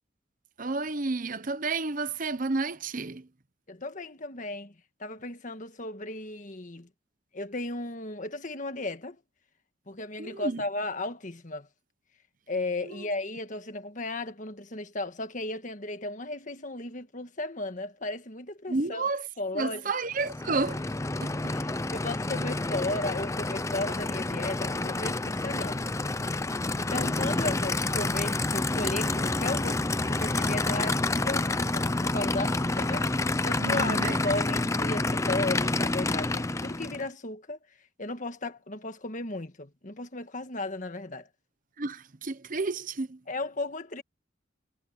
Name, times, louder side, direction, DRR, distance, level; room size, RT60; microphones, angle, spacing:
voice 1, 0.6-3.3 10.2-10.6 12.9-13.1 18.7-19.2 19.5-20.8 21.2-21.5 33.6-34.4 41.8-43.2, right 3 dB, 45° right, 1.0 m, -31 dB
voice 2, 3.7-4.7 5.0-6.9 7.3-9.2 9.9-11.7 12.5-19.1 19.4-19.9 21.4-25.9 26.8-33.1 33.4-37.6 38.0-41.3 43.3-44.0, left 2 dB, 40° left, 1.6 m, -35 dB
Aircraft / Idling, 20.1-37.1, left 2 dB, 15° left, 0.5 m, -28 dB
head